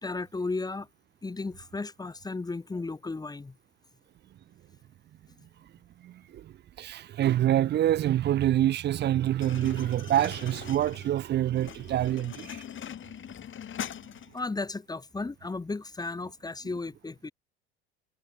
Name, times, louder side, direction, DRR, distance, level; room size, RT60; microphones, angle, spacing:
voice 1, 0.0-0.9 1.2-3.5 14.3-17.3, left 3 dB, 10° left, 1.3 m, -34 dB
voice 2, 6.0-12.6, right 12 dB, 30° right, 0.7 m, -26 dB
sound 1, 9.4-14.5, left 9 dB, 35° left, 5.2 m, -42 dB
figure-of-eight pair, 70°, 34 cm